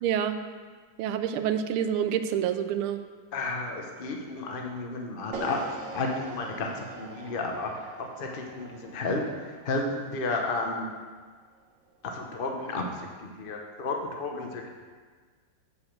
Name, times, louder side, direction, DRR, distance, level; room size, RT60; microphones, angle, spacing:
voice 1, 0.0-0.4 1.0-3.0, right 9 dB, 85° right, 9 dB, 1.5 m, -27 dB
voice 2, 3.3-10.9 12.0-12.8 13.2-14.7, left 3 dB, 75° left, 2 dB, 0.5 m, -32 dB
sound 1, 5.3-11.5, right 4 dB, 70° right, 1.7 m, -43 dB
8.4 x 4.9 x 7.2 m, 1.5 s
omnidirectional pair, 2.3 m